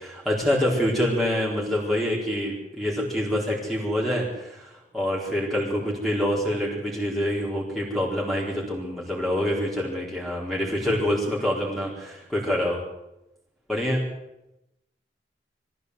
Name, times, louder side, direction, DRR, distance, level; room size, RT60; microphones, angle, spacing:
voice 1, 0.0-12.8 13.7-14.1, left 1 dB, ahead, -4 dB, 4.3 m, -26 dB
22.0 x 15.0 x 8.2 m, 0.91 s
head